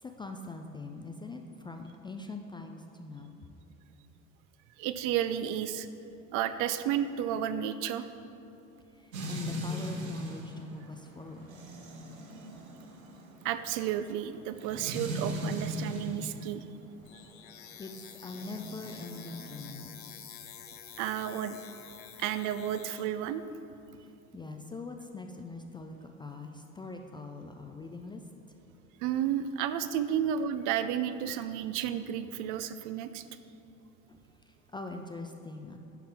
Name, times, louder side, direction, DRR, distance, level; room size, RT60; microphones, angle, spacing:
voice 1, 0.0-3.4 8.9-11.5 17.2-17.5 17.8-20.0 24.0-28.2 33.8-35.8, left 3 dB, 15° left, 4 dB, 0.3 m, -43 dB
voice 2, 4.8-5.9 6.3-8.1 13.4-16.7 21.0-21.6 22.2-23.4 29.0-33.2, right 10 dB, 50° right, 11 dB, 0.5 m, -32 dB
sound 1, 9.1-16.4 18.3-19.7, equal, 85° right, 1.0 m, -38 dB
sound 2, 17.0-23.0, left 8 dB, 75° left, 0.8 m, -49 dB
10.5 x 5.7 x 3.5 m, 2.8 s
hypercardioid pair, 70°, 40 cm